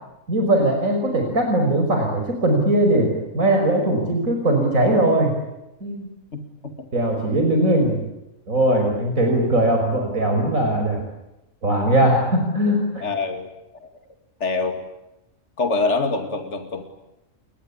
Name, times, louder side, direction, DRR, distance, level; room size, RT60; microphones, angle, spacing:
voice 1, 0.3-5.3 5.8-6.1 6.9-8.0 8.5-11.0 11.6-13.0, right 1 dB, 90° right, 3 dB, 5.9 m, -20 dB
voice 2, 6.3-6.7 13.0-13.5 13.8-13.9 14.4-14.8 15.6-16.8, left 3 dB, 60° left, 6 dB, 2.8 m, -25 dB
29.0 x 23.5 x 8.5 m, 0.91 s
omnidirectional pair, 1.4 m